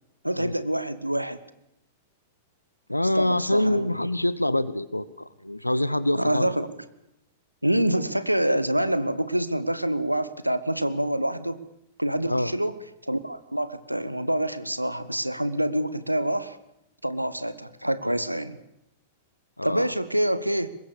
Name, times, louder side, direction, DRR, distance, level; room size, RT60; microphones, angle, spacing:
voice 1, 0.2-1.4 3.1-3.9 6.1-6.7 7.6-11.6 12.0-12.7 13.0-16.6 17.0-18.6 19.6-20.7, right 1 dB, 90° right, 14 dB, 1.2 m, -26 dB
voice 2, 2.9-6.7 12.2-12.5 18.0-18.2 19.6-19.9, left 1 dB, 85° left, 17 dB, 1.0 m, -26 dB
23.5 x 21.0 x 7.0 m, 0.86 s
figure-of-eight pair, 100°, 0 cm